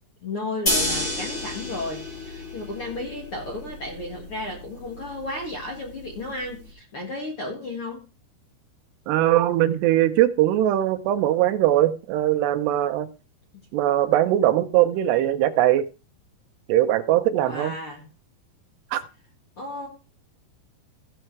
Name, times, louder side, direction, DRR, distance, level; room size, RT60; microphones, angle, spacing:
voice 1, 0.2-8.0 17.4-18.1 19.6-19.9, left 2 dB, 50° left, 0 dB, 1.7 m, -33 dB
sound 1, 0.7-6.7, left 1 dB, 20° left, 2.8 m, -31 dB
voice 2, 9.1-13.1 13.7-15.9 16.7-17.7 18.9-19.0, right 13 dB, 80° right, 9 dB, 2.8 m, -21 dB
15.5 x 5.6 x 4.6 m, 0.32 s
omnidirectional pair, 5.1 m